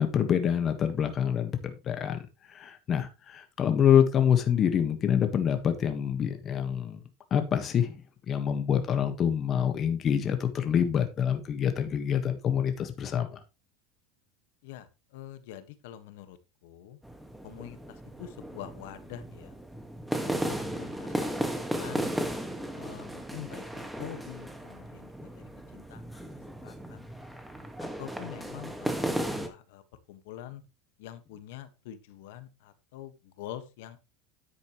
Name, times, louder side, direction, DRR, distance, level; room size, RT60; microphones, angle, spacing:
voice 1, 0.0-2.2 2.5-7.0 7.3-13.4, left 8 dB, 35° left, 1.5 m, -26 dB
voice 2, 14.6-16.4 16.6-17.0 17.4-19.6 20.2-20.4 20.7-22.1 22.7-26.2 26.6-27.1 27.8-29.8 30.1-30.6 31.0-34.0, left 12 dB, 75° left, 1.5 m, -45 dB
sound 1, 17.0-29.5, right 1 dB, 5° right, 1.7 m, -35 dB
10.0 x 8.3 x 3.1 m
supercardioid pair, 125°, 0 cm